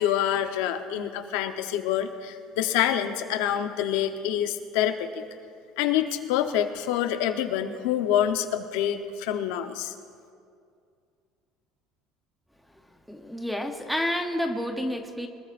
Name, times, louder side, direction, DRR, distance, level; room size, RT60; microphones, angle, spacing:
voice 1, 0.0-5.2 5.8-9.9, left 10 dB, 85° left, 7 dB, 0.9 m, -26 dB
voice 2, 13.1-15.3, left 1 dB, ahead, 3 dB, 0.8 m, -29 dB
24.5 x 20.5 x 2.6 m, 2.3 s
cardioid pair, 175°, 0 cm